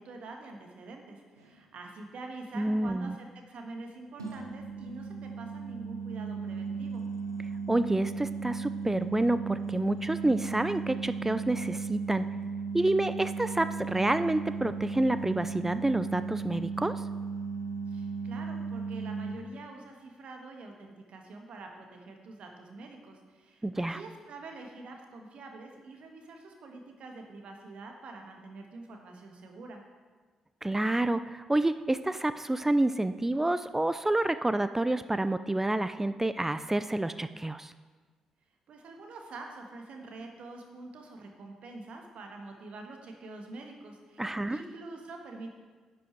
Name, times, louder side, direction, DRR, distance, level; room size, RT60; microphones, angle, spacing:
voice 1, 0.0-7.0 17.9-29.8 38.7-45.6, right 3 dB, 55° right, 3 dB, 1.5 m, -46 dB
sound 1, 1.4-1.6 4.2-19.3, right 5 dB, 90° right, 0.7 m, -36 dB
voice 2, 2.6-3.2 7.7-12.3 12.7-17.0 23.6-24.0 30.6-37.7 44.2-44.6, right 1 dB, 15° right, 12 dB, 0.4 m, -28 dB
10.5 x 6.2 x 4.6 m, 1.4 s
figure-of-eight pair, 40°, 2 cm